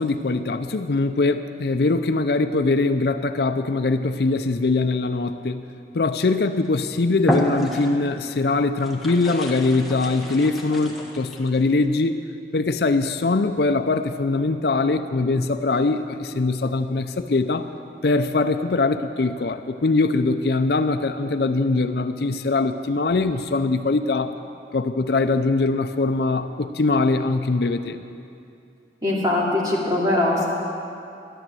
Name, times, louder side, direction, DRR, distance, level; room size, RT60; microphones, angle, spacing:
voice 1, 0.0-5.6 5.9-12.2 12.5-17.7 18.0-24.3 24.7-28.0, left 3 dB, 65° left, 9 dB, 0.5 m, -22 dB
sound 1, 6.5-6.8 7.2-8.2 8.8-11.6, equal, ahead, 1.4 m, -29 dB
voice 2, 29.0-30.4, left 2 dB, 20° right, -5 dB, 2.6 m, -21 dB
13.5 x 11.0 x 7.6 m, 2.6 s
head